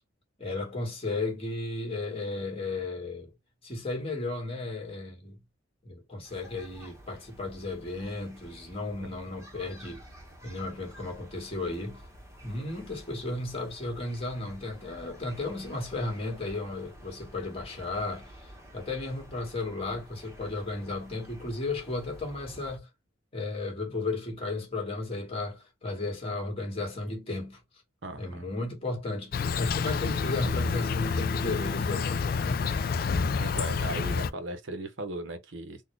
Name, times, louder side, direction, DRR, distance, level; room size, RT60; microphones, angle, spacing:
voice 1, 0.4-3.3 3.6-5.4 5.8-10.1 10.4-12.0 12.4-22.9 23.3-27.6 28.2-32.8, left 2 dB, 30° left, 1.6 m, -34 dB
sound 1, 6.2-22.8, equal, 15° right, 1.0 m, -50 dB
voice 2, 28.0-28.4 33.4-35.8, right 2 dB, 65° right, 0.7 m, -37 dB
Insect, 29.3-34.3, left 5 dB, 45° left, 0.3 m, -28 dB
4.0 x 2.2 x 3.1 m
head